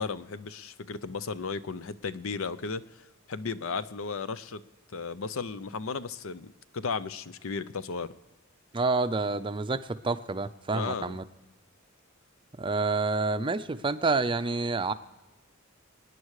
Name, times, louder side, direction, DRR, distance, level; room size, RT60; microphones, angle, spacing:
voice 1, 0.0-4.6 4.9-8.1 10.7-11.2, left 4 dB, 70° left, 15 dB, 0.6 m, -35 dB
voice 2, 8.7-11.2 12.6-14.9, right 3 dB, 25° right, 11 dB, 0.5 m, -28 dB
27.0 x 9.6 x 4.8 m, 1.2 s
head